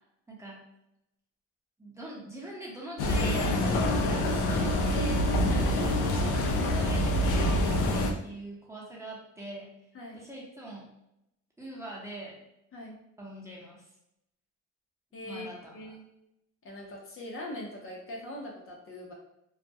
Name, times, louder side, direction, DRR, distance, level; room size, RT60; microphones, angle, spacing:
voice 1, 0.3-0.6 1.8-9.7 10.1-10.9 11.6-12.4 13.2-13.9 15.2-16.0, right 1 dB, 10° right, -5 dB, 0.8 m, -43 dB
sound 1, 3.0-8.1, left 1 dB, 85° left, 0.5 m, -26 dB
voice 2, 15.1-16.0 16.6-19.1, left 1 dB, 45° left, -2 dB, 0.6 m, -42 dB
2.3 x 2.1 x 2.7 m, 0.82 s
cardioid pair, 90°, 30 cm